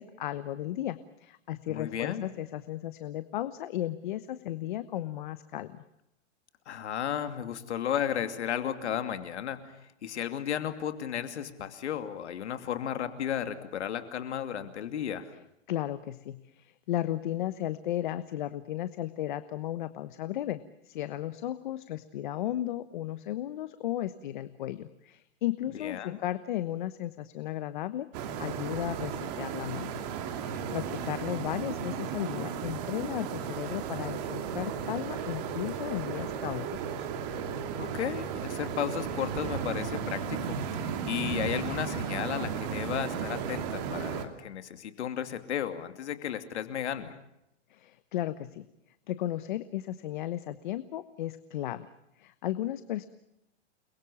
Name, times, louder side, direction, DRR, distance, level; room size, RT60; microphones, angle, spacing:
voice 1, 0.0-5.8 15.7-28.1 28.4-29.9 30.4-36.7 37.0-37.1 47.7-48.6 49.1-51.9 52.2-53.1, left 13 dB, 40° left, 13 dB, 1.1 m, -35 dB
voice 2, 1.7-2.3 6.7-15.3 25.7-26.2 37.7-47.2, left 9 dB, 70° left, 9 dB, 2.7 m, -34 dB
sound 1, 28.1-44.2, right 7 dB, 35° right, 2.7 m, -35 dB
29.5 x 22.5 x 7.0 m, 0.83 s
hypercardioid pair, 170°, 36 cm